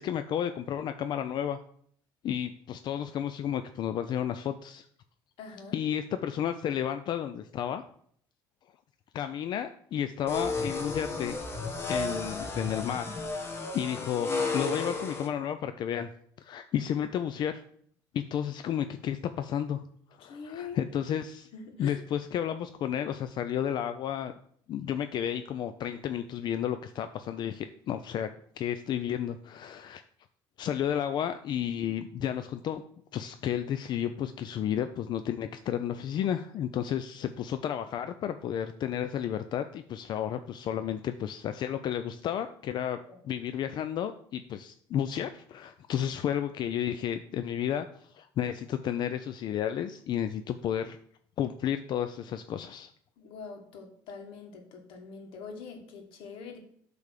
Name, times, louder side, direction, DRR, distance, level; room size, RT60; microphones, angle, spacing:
voice 1, 0.0-1.6 2.2-4.9 5.7-7.8 9.1-11.4 11.9-16.1 16.4-17.6 18.1-19.8 20.2-21.5 21.8-24.3 24.7-28.3 28.6-30.0 30.6-32.8 33.1-51.0 51.4-52.9, left 9 dB, 55° left, 9 dB, 0.5 m, -32 dB
voice 2, 5.4-5.8 20.2-20.8 21.5-22.0 43.1-43.3 53.2-56.6, left 5 dB, 75° left, 3 dB, 1.8 m, -44 dB
sound 1, 10.3-15.3, left 3 dB, 30° left, 1.5 m, -33 dB
8.3 x 3.5 x 6.6 m, 0.63 s
cardioid pair, 95°, 9 cm